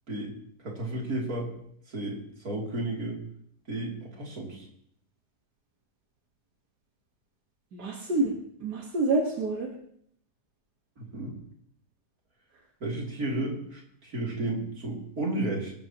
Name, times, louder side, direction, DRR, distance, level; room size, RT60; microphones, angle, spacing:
voice 1, 0.6-1.5 1.9-3.2 3.7-4.7 11.0-11.4 12.8-15.7, right 2 dB, 60° right, -2 dB, 3.6 m, -33 dB
voice 2, 7.7-9.7, right 2 dB, 80° right, -1 dB, 2.2 m, -28 dB
24.0 x 13.0 x 3.0 m, 0.67 s
omnidirectional pair, 1.7 m